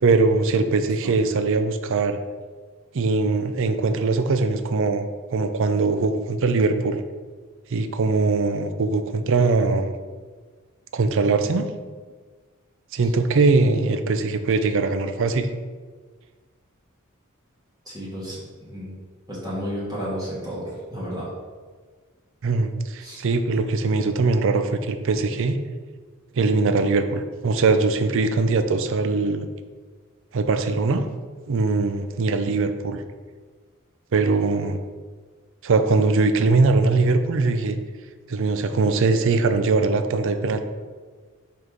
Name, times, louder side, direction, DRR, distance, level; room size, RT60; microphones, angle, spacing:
voice 1, 0.0-2.2 2.9-7.0 7.7-10.0 10.9-11.7 12.9-15.5 22.4-25.6 26.3-29.5 30.3-31.0 31.5-33.0 34.1-34.8 35.6-37.8 38.3-40.6, right 3 dB, 65° right, 9 dB, 0.5 m, -21 dB
voice 2, 17.8-18.9 19.3-21.3 23.0-23.2, equal, 20° right, -7 dB, 1.5 m, -32 dB
5.2 x 4.7 x 3.8 m, 1.5 s
head